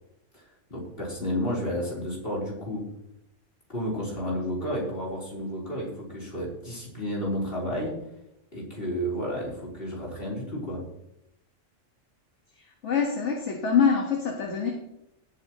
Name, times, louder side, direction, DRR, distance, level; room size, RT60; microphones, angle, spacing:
voice 1, 0.7-2.9 3.7-8.0 8.5-10.9, equal, 45° left, -4 dB, 4.1 m, -31 dB
voice 2, 12.6-14.7, left 6 dB, 65° left, 0 dB, 1.8 m, -25 dB
17.5 x 8.3 x 3.0 m, 0.83 s
omnidirectional pair, 1.3 m